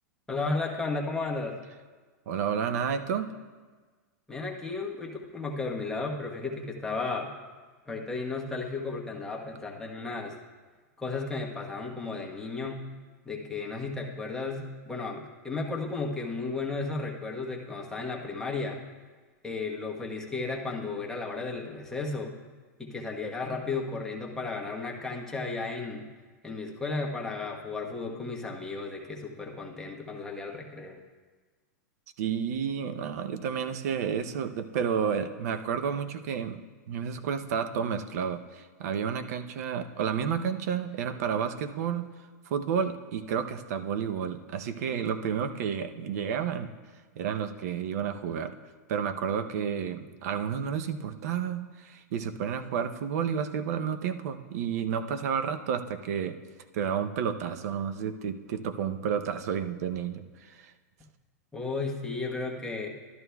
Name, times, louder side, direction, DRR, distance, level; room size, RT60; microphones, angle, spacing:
voice 1, 0.3-1.6 4.3-7.3 7.9-10.4 11.0-12.9 13.2-18.8 19.4-22.3 22.8-26.1 26.4-31.0 61.5-62.9, left 3 dB, 5° left, -2 dB, 1.1 m, -34 dB
voice 2, 2.3-3.3 32.2-36.6 36.9-42.1 42.5-46.7 47.2-48.6 48.9-56.4 56.7-60.7, right 7 dB, 65° right, 9 dB, 0.7 m, -31 dB
12.5 x 11.0 x 2.3 m, 1.4 s
hypercardioid pair, 135°, 9 cm